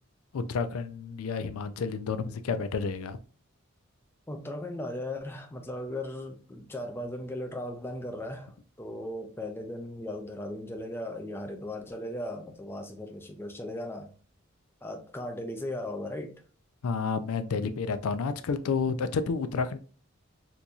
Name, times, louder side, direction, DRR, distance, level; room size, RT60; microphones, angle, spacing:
voice 1, 0.3-3.2 16.8-19.8, left 5 dB, 90° left, 0.4 m, -30 dB
voice 2, 4.3-14.1 14.8-16.3, left 1 dB, 10° left, 0.4 m, -37 dB
4.3 x 2.7 x 2.3 m
head